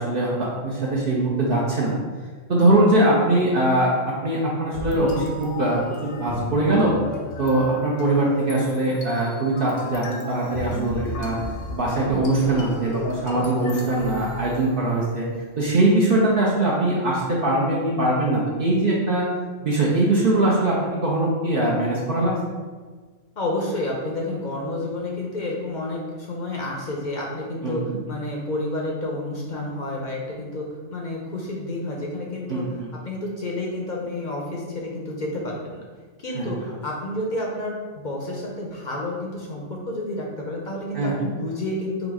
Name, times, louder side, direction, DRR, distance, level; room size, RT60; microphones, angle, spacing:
voice 1, 0.0-1.9 2.5-7.0 7.4-11.4 11.7-15.3 15.6-19.3 19.6-22.3 27.6-28.0 32.5-32.9 36.3-36.7 40.9-41.1, right 2 dB, 50° right, -5 dB, 0.9 m, -22 dB
sound 1, 4.7-15.0, left 2 dB, 80° left, 1.0 m, -34 dB
voice 2, 23.4-35.8 36.2-42.1, left 1 dB, 45° left, -2 dB, 0.7 m, -30 dB
4.0 x 2.6 x 4.7 m, 1.4 s
omnidirectional pair, 1.3 m